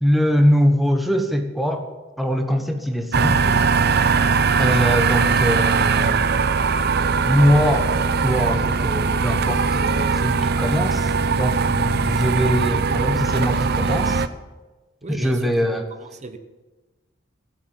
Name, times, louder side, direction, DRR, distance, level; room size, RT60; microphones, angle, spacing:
voice 1, 0.0-1.9 2.2-3.6 4.6-6.2 7.2-14.2 15.1-15.8, equal, ahead, 4 dB, 1.2 m, -22 dB
sound 1, 3.1-14.3, right 5 dB, 55° right, 0.6 m, -20 dB
voice 2, 15.0-15.6 15.9-16.4, right 3 dB, 35° right, 7 dB, 1.1 m, -36 dB
15.5 x 8.2 x 8.1 m, 1.2 s
head